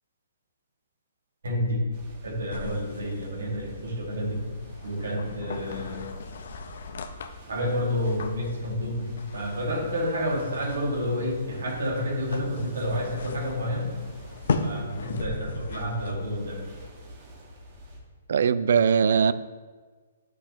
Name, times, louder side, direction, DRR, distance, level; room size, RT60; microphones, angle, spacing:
voice 1, 1.4-1.9 2.2-4.6 4.8-6.1 7.5-14.0 14.6-16.6, equal, 90° right, 2.0 m, -29 dB
sound 1, 1.9-18.0, equal, 35° right, 1.3 m, -46 dB
sound 2, 2.5-16.2, left 4 dB, 65° left, 0.6 m, -38 dB
voice 2, 18.3-19.3, right 6 dB, 65° right, 0.3 m, -20 dB
8.5 x 5.9 x 3.0 m
hypercardioid pair, 160°, 0 cm